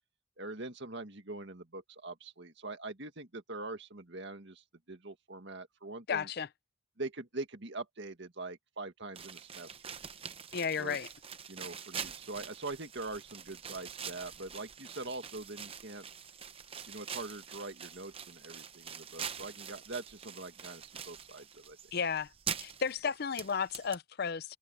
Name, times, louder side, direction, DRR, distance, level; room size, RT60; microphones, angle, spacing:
voice 1, 0.4-6.3 7.0-9.9 10.8-11.0 11.5-16.1 16.9-21.8, right 2 dB, 55° right, 2.0 m, -43 dB
voice 2, 6.1-6.5 10.5-11.1 21.9-22.3 22.6-24.6, left 6 dB, 45° left, 0.5 m, -33 dB
sound 1, 9.2-24.0, right 7 dB, 25° right, 0.8 m, -45 dB
head